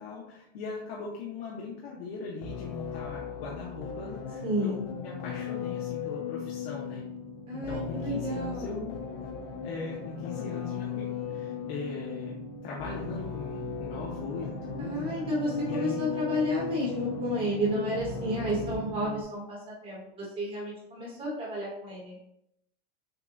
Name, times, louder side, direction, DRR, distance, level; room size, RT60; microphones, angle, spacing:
voice 1, 0.0-7.0 7.5-9.0 9.6-12.4 12.6-15.3 15.6-16.1, left 4 dB, 90° left, -3 dB, 1.0 m, -39 dB
sound 1, 1.4-1.5 1.6-19.2, right 7 dB, 50° right, 0.6 m, -45 dB
sound 2, 2.4-19.0, left 9 dB, 40° left, 0.6 m, -38 dB
voice 2, 4.4-4.8 7.5-8.8 14.8-19.6 19.8-22.2, equal, 15° right, -5 dB, 1.3 m, -31 dB
6.8 x 2.3 x 2.5 m, 0.78 s
supercardioid pair, 175°, 30 cm